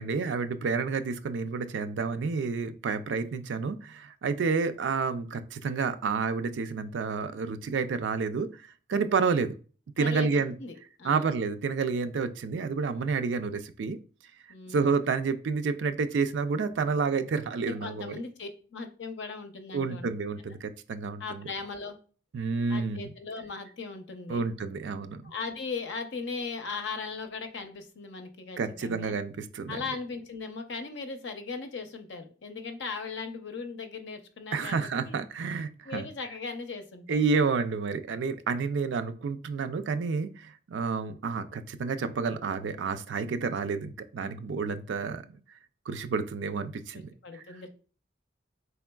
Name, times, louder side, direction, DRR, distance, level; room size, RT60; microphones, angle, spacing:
voice 1, 0.0-8.5 8.9-9.6 10.0-10.5 11.0-14.0 14.7-18.1 19.7-21.5 22.3-23.1 24.3-25.3 28.6-29.8 34.5-36.1 37.1-45.4 45.9-47.1, right 5 dB, 90° right, 10 dB, 0.4 m, -29 dB
voice 2, 10.0-11.3 14.5-14.9 17.7-20.1 21.2-22.0 22.7-24.5 25.2-29.2 29.7-35.2 35.9-37.2 46.9-47.7, left 4 dB, 85° left, 7 dB, 0.6 m, -38 dB
4.3 x 3.4 x 2.2 m, 0.39 s
head